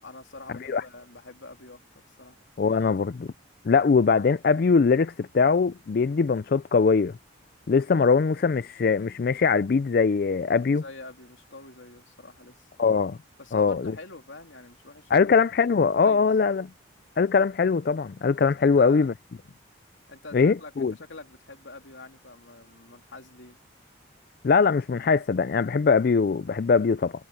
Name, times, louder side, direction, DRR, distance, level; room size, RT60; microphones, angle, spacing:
voice 1, 0.0-2.4 10.6-12.7 13.4-16.3 18.6-19.1 20.1-23.6, left 3 dB, 75° left, 2.9 m, -45 dB
voice 2, 2.6-3.3 3.7-7.1 7.7-10.8 12.8-13.2 13.5-13.9 15.1-16.7 17.2-19.1 20.3-20.9 24.4-27.1, left 5 dB, 50° left, 0.4 m, -22 dB
head